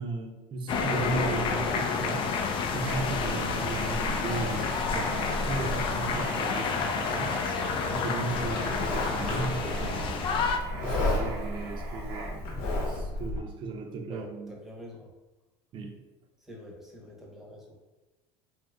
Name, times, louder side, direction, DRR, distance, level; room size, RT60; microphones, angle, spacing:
voice 1, 0.0-2.3 2.7-7.4 7.9-10.3 10.8-14.5 15.7-15.9, right 3 dB, 40° right, 3 dB, 0.6 m, -36 dB
sound 1, 0.7-10.6, left 5 dB, 40° left, 0.4 m, -29 dB
Writing, 2.8-12.6, right 3 dB, 90° right, 0.8 m, -40 dB
Livestock farm animals working animals, 8.3-13.4, left 2 dB, 65° left, 0.9 m, -32 dB
voice 2, 14.1-15.1 16.4-17.7, left 1 dB, ahead, -2 dB, 0.8 m, -46 dB
2.8 x 2.4 x 3.4 m, 1.1 s
supercardioid pair, 120°, 13 cm